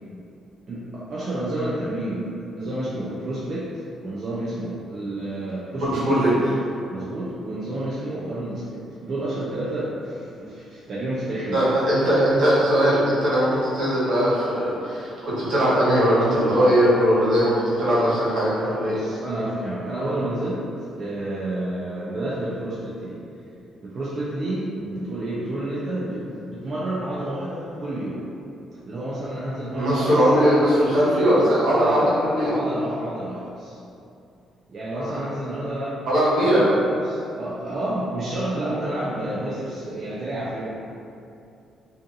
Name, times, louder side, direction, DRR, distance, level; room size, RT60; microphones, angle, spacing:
voice 1, 0.7-3.7 4.0-6.2 6.9-11.7 18.9-20.6 21.0-23.2 23.8-28.3 28.9-30.5 31.8-33.8 34.7-36.1 36.7-40.7, right 1 dB, 50° right, -8 dB, 0.4 m, -30 dB
voice 2, 5.8-6.3 11.5-19.0 29.7-32.6 34.9-35.2 36.1-36.7, equal, 75° right, -10 dB, 1.1 m, -20 dB
2.5 x 2.4 x 2.6 m, 2.6 s
cardioid pair, 90°, 0 cm